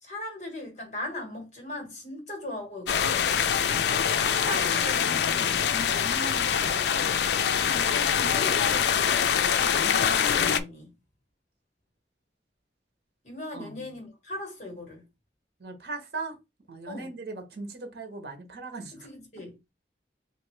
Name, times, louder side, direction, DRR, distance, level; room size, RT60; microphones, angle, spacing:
voice 1, 0.0-3.3 4.2-10.9 13.2-15.1 16.9-17.1 18.9-19.7, left 1 dB, 40° left, 1.5 m, -39 dB
sound 1, 2.9-10.6, left 8 dB, 75° left, 0.4 m, -24 dB
voice 2, 13.5-13.9 15.6-16.4 16.7-19.1, right 3 dB, 65° right, 1.0 m, -39 dB
3.4 x 2.7 x 3.2 m
head